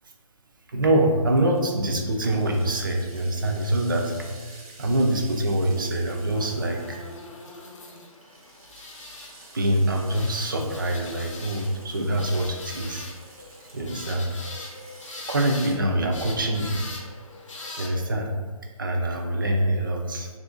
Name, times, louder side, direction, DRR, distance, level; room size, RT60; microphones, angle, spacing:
voice 1, 0.7-4.1 4.5-7.0 9.5-13.1 13.7-14.3 15.3-16.8 17.8-18.3 18.8-20.3, right 1 dB, 35° right, 2 dB, 0.4 m, -25 dB
sound 1, 1.3-15.8, right 2 dB, 75° right, 1.0 m, -50 dB
sound 2, 6.3-17.9, left 2 dB, 55° left, 0.7 m, -42 dB
2.8 x 2.4 x 3.6 m, 1.4 s
hypercardioid pair, 165°, 19 cm